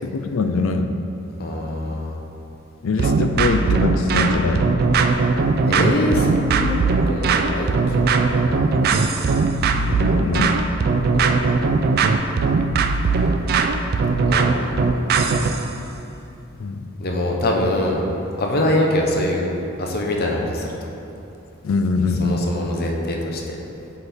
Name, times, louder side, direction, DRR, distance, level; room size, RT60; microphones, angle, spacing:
voice 1, 0.0-1.0 2.8-4.7 9.7-10.6 16.6-16.9 21.6-22.4, left 3 dB, 70° left, 7 dB, 0.4 m, -22 dB
voice 2, 1.4-2.2 5.7-6.8 7.1-8.8 11.1-11.4 14.2-15.4 17.0-18.0 18.4-19.5 19.8-20.7 22.2-23.6, left 1 dB, 50° left, 0 dB, 0.8 m, -24 dB
sound 1, 3.0-15.6, right 4 dB, 45° right, 0.3 m, -19 dB
8.0 x 4.4 x 3.5 m, 2.8 s
head